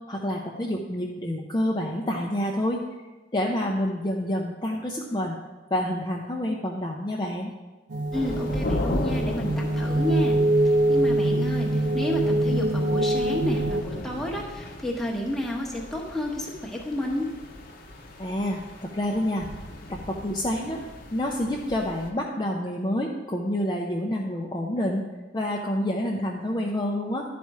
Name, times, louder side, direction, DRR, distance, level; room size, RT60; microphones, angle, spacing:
voice 1, 0.1-2.8 3.3-5.4 5.7-7.5 18.2-18.6 18.9-19.5 19.9-20.8 21.1-25.1 25.3-27.2, left 1 dB, 20° left, -1 dB, 0.5 m, -28 dB
sound 1, 7.9-13.8, right 1 dB, 65° right, 0.5 m, -24 dB
sound 2, 8.1-22.1, left 1 dB, 50° left, 0.8 m, -36 dB
voice 2, 8.1-10.4 10.6-17.3, left 1 dB, ahead, -2 dB, 1.0 m, -30 dB
11.5 x 4.2 x 4.7 m, 1.2 s
head